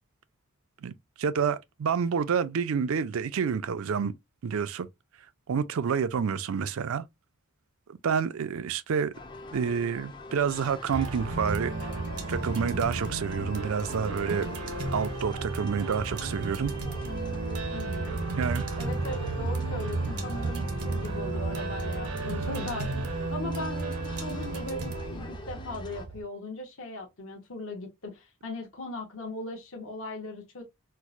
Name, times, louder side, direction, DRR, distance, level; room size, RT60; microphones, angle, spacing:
voice 1, 1.2-4.1 4.4-4.9 5.5-7.0 7.9-9.1 9.5-11.9 12.3-14.5 14.9-16.7 18.4-18.6, right 6 dB, 70° right, 0.4 m, -28 dB
sound 1, 9.1-26.1, left 2 dB, 20° left, 0.4 m, -45 dB
sound 2, 10.9-26.2, right 3 dB, 85° right, 0.8 m, -33 dB
voice 2, 17.7-18.2 18.8-30.6, left 2 dB, 60° left, 0.8 m, -39 dB
4.5 x 2.0 x 2.4 m
head